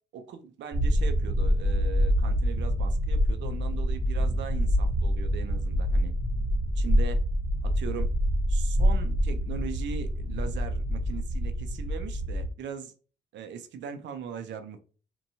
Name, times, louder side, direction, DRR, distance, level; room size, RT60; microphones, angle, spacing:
voice 1, 0.1-6.1 6.8-7.2 7.6-8.1 8.5-12.9 13.3-14.8, right 7 dB, 65° right, 8 dB, 0.5 m, -39 dB
sound 1, 0.7-12.5, equal, 5° left, 0.8 m, -26 dB
2.9 x 2.2 x 2.6 m, 0.37 s
cardioid pair, 90°, 20 cm